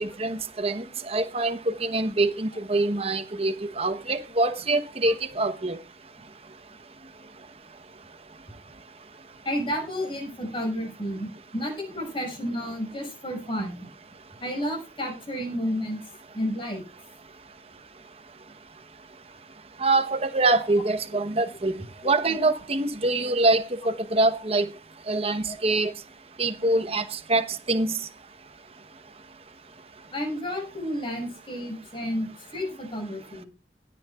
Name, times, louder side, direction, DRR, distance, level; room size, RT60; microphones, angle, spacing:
voice 1, 0.0-5.8 19.8-21.8 22.0-24.7 25.1-25.9 26.4-27.9, right 2 dB, 35° right, 1.0 m, -25 dB
voice 2, 9.4-13.9 14.4-16.0 16.3-16.8 25.5-25.6 30.1-33.5, equal, 30° left, 6.2 m, -31 dB
18.0 x 9.5 x 2.4 m
head